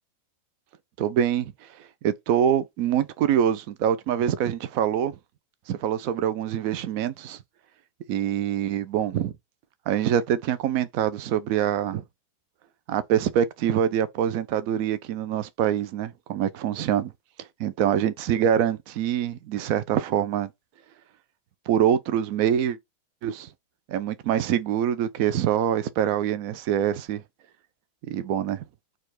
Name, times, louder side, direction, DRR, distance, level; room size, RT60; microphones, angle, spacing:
voice 1, 1.0-1.5 2.0-5.2 5.7-7.4 8.1-9.3 9.9-12.0 12.9-17.1 17.4-20.5 21.7-22.8 23.2-23.5 23.9-27.2 28.1-28.6, right 9 dB, 45° right, 0.6 m, -25 dB
4.4 x 2.5 x 4.6 m
figure-of-eight pair, 90°, 0 cm